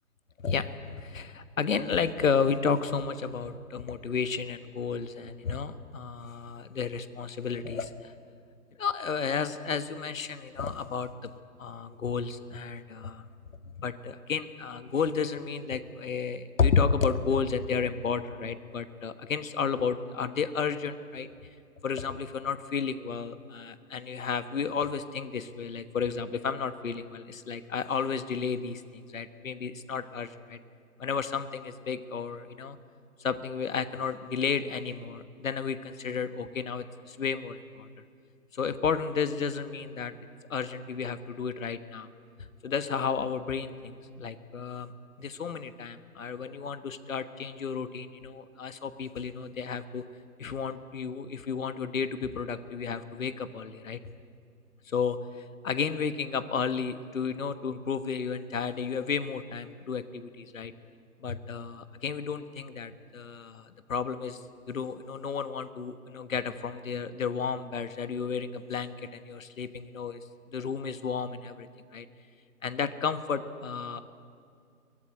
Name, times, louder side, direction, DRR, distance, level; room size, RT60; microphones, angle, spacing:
voice 1, 0.4-8.1 8.8-13.2 13.8-21.3 21.8-30.6 31.0-32.8 33.2-37.9 38.5-40.1 40.5-42.1 42.6-44.9 45.2-50.0 50.4-54.0 54.8-60.7 61.2-64.4 64.7-70.2 70.5-72.1 72.6-74.0, left 6 dB, 60° left, 12 dB, 1.4 m, -32 dB
22.5 x 18.5 x 9.6 m, 2.4 s
figure-of-eight pair, 140°, 45 cm